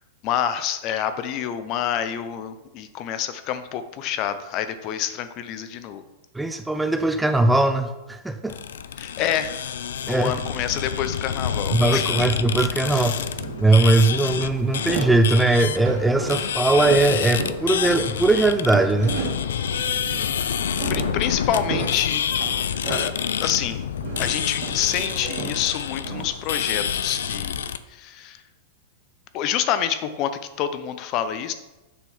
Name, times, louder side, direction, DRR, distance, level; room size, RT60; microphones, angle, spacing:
voice 1, 0.2-6.0 9.0-9.6 10.1-12.3 12.9-13.3 19.8-19.9 20.9-22.3 22.9-23.1 23.4-23.8 24.2-28.4 29.3-30.3 30.6-31.5, left 10 dB, 40° left, 11 dB, 0.6 m, -27 dB
voice 2, 6.3-8.6 10.1-10.3 11.7-13.2 13.6-19.2, right 2 dB, 5° right, 8 dB, 0.4 m, -20 dB
sound 1, 8.5-27.8, left 8 dB, 90° left, 0.4 m, -28 dB
sound 2, 13.2-14.0 14.3-20.3 20.6-23.3 23.5-26.2, right 4 dB, 65° right, 2.1 m, -34 dB
7.0 x 3.7 x 6.1 m, 1.1 s
supercardioid pair, 140°, 0 cm